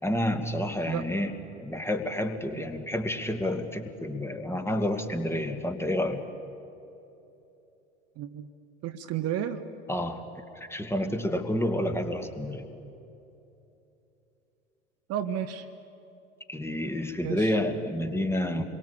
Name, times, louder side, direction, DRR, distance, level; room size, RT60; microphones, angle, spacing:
voice 1, 0.0-6.2 9.9-12.7 16.5-18.6, left 1 dB, 5° left, 6 dB, 2.2 m, -29 dB
voice 2, 8.2-8.5 8.8-9.6 15.1-15.7 17.2-17.6, right 10 dB, 40° right, 8 dB, 1.4 m, -32 dB
28.5 x 22.5 x 8.7 m, 2.9 s
figure-of-eight pair, 75°, 37 cm